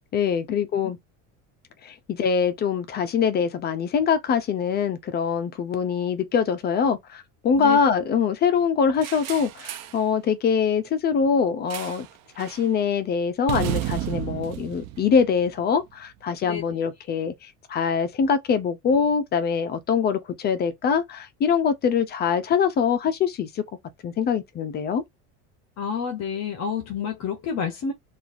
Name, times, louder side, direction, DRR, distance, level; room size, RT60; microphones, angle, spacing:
voice 1, 0.1-1.0 1.8-12.1 12.4-23.6 24.0-25.0, left 6 dB, 30° left, 0.4 m, -23 dB
sound 1, 9.0-10.0 11.7-12.1 12.4-12.7 13.5-15.8, right 13 dB, 45° right, 0.5 m, -32 dB
voice 2, 25.8-27.9, left 7 dB, 45° left, 0.8 m, -29 dB
3.0 x 2.4 x 2.5 m
cardioid pair, 135°, 36 cm